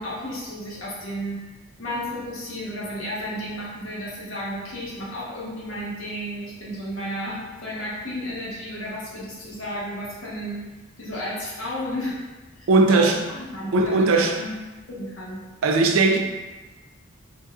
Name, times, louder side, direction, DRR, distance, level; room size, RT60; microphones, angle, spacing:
voice 1, 0.0-1.5 1.8-10.7 11.0-12.2 12.6-14.6 14.9-15.4, equal, 80° left, 1.0 m, -33 dB
voice 2, 12.7-13.2 13.7-14.3 15.6-16.2, right 3 dB, 80° right, 0.4 m, -18 dB
3.9 x 2.3 x 2.4 m
head